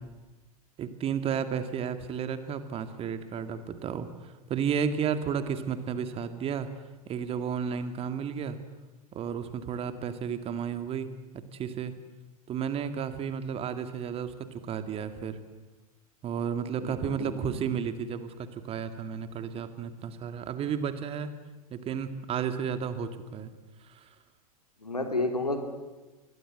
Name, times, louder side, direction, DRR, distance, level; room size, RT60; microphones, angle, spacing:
voice 1, 0.8-6.7 7.1-8.6 9.1-11.1 11.3-11.9 12.5-15.4 16.2-21.3 21.7-23.5 23.8-24.2, right 7 dB, 30° right, 10 dB, 2.2 m, -32 dB
voice 2, 16.8-17.6 24.8-25.6, left 2 dB, 85° left, 6 dB, 3.4 m, -31 dB
26.5 x 21.5 x 7.9 m, 1.2 s
figure-of-eight pair, 90°, 19 cm